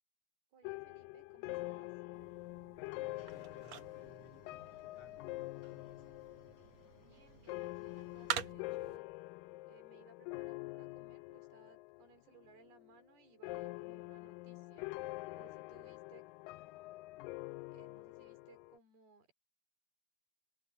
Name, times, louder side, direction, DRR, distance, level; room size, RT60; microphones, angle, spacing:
voice 1, 0.5-1.9 6.9-9.1 9.7-14.9 15.3-16.2 17.7-19.3, right 5 dB, 80° right, 6.4 m, -64 dB
sound 1, 0.6-12.1 12.4-13.0 13.4-18.8, left 21 dB, 85° left, 1.9 m, -46 dB
sound 2, 2.1-9.0, right 10 dB, 55° right, 2.2 m, -47 dB
voice 2, 3.0-5.2 5.7-6.1, left 5 dB, 50° left, 3.6 m, -61 dB
sound 3, 3.1-8.5, left 1 dB, 20° left, 5.6 m, -72 dB
omnidirectional pair, 4.5 m